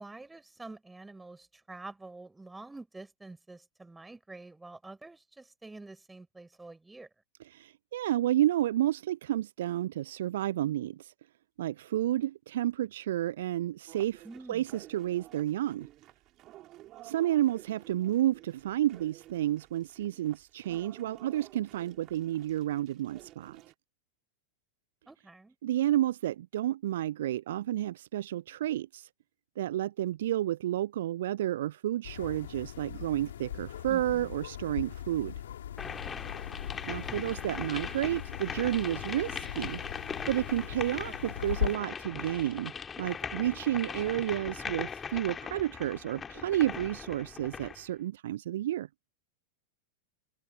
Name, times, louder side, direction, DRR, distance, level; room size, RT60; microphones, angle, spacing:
voice 1, 0.0-7.1 14.2-14.6 25.1-25.6 33.9-34.3 37.0-37.2 41.0-41.2, right 2 dB, 10° right, 5.1 m, -48 dB
voice 2, 7.5-11.1 11.6-14.2 14.5-15.9 17.0-23.6 25.6-29.1 29.6-35.3 36.9-39.8 40.3-42.7 43.0-48.9, right 13 dB, 60° right, 0.5 m, -31 dB
sound 1, 13.9-23.7, right 15 dB, 35° right, 4.9 m, -53 dB
sound 2, 32.0-41.8, left 11 dB, 60° left, 5.3 m, -39 dB
sound 3, 35.8-47.8, left 6 dB, 20° left, 2.9 m, -40 dB
open air
figure-of-eight pair, 90°, 0 cm